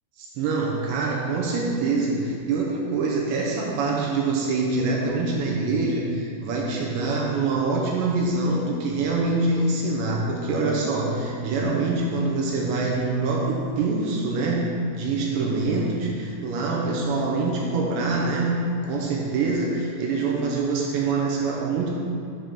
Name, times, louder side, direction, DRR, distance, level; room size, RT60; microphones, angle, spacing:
voice 1, 0.2-14.7 15.0-21.9, right 3 dB, 80° right, -2 dB, 2.8 m, -25 dB
7.5 x 5.5 x 6.6 m, 2.5 s
omnidirectional pair, 5.6 m